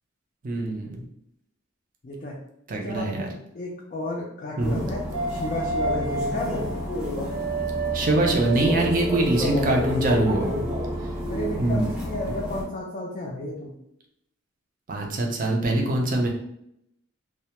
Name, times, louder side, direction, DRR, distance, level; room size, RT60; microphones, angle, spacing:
voice 1, 0.4-1.1 2.7-3.3 4.6-4.8 7.9-10.7 11.6-11.8 14.9-16.3, right 2 dB, 40° right, 0 dB, 0.4 m, -23 dB
voice 2, 2.0-2.3 2.8-5.0 5.3-6.7 11.3-13.7, left 1 dB, 40° left, -3 dB, 0.3 m, -32 dB
sound 1, 4.6-12.6, left 1 dB, 5° right, 0.7 m, -31 dB
sound 2, 5.1-11.5, right 2 dB, 80° right, 1.1 m, -31 dB
2.1 x 2.1 x 2.8 m, 0.77 s
head